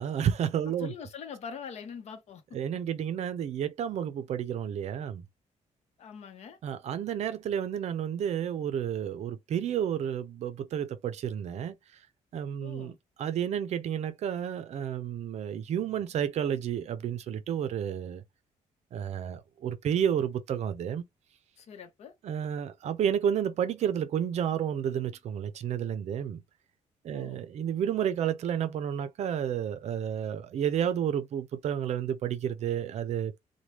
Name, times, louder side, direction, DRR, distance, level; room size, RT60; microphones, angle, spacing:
voice 1, 0.0-0.9 2.5-5.2 6.6-11.7 12.3-12.9 13.2-18.2 18.9-21.0 22.2-26.4 27.0-33.5, right 9 dB, 60° right, 0.5 m, -31 dB
voice 2, 0.8-2.6 6.0-6.6 12.6-13.0 21.6-22.1 27.1-27.4, left 7 dB, 55° left, 0.8 m, -43 dB
3.2 x 2.2 x 2.9 m
cardioid pair, 135°, 13 cm